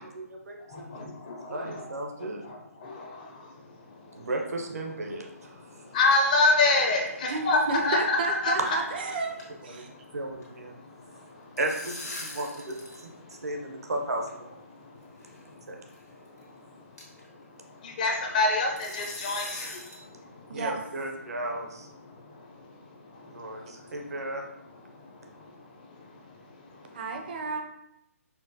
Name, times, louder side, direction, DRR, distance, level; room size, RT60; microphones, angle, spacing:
voice 1, 0.0-2.4 4.1-5.8 7.3-7.4 8.6-8.7 9.7-10.8 11.6-14.6 15.7-15.8 20.5-21.9 23.3-24.4, right 2 dB, 75° right, 2 dB, 0.7 m, -35 dB
voice 2, 0.9-1.8 2.8-2.9 5.9-8.8 18.0-19.5, left 3 dB, 30° left, 1 dB, 0.5 m, -25 dB
sound 1, 6.7-7.5 7.7-7.9 8.2-8.3 8.7-8.9 9.1-10.5 11.3-13.0 13.3-13.4 14.3-14.4 15.2-15.4 15.9-16.0 16.4-16.5 17.0-17.3 18.8-20.0, left 2 dB, 85° left, 1.2 m, -41 dB
voice 3, 7.3-9.3 9.6-9.9 20.5-20.8 26.9-27.6, right 3 dB, 40° right, 4 dB, 0.4 m, -31 dB
4.3 x 2.0 x 2.7 m, 0.83 s
figure-of-eight pair, 150°, 9 cm